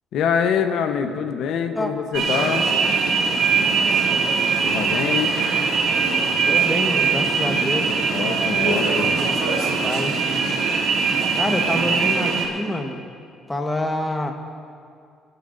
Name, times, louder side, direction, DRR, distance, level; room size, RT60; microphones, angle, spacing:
voice 1, 0.1-2.7 4.6-5.3 8.1-9.1, left 7 dB, 70° left, 6 dB, 0.9 m, -24 dB
sound 1, 2.1-12.5, right 5 dB, 65° right, 2.7 m, -21 dB
voice 2, 6.5-7.9 8.7-8.8 9.4-10.2 11.3-13.0 13.5-14.3, left 1 dB, 10° left, 3 dB, 1.3 m, -27 dB
29.0 x 11.0 x 2.6 m, 2.3 s
cardioid pair, 120°, 0 cm